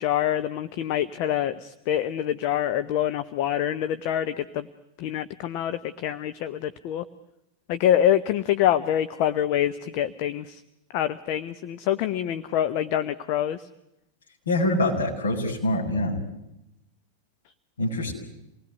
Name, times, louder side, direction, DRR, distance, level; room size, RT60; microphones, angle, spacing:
voice 1, 0.0-4.7 5.0-7.0 7.7-10.6 10.9-13.6, left 11 dB, 45° left, 10 dB, 1.0 m, -25 dB
voice 2, 14.5-16.2 17.8-18.1, left 1 dB, 70° left, 0 dB, 7.2 m, -24 dB
28.0 x 20.0 x 9.5 m, 0.89 s
figure-of-eight pair, 90°, 0 cm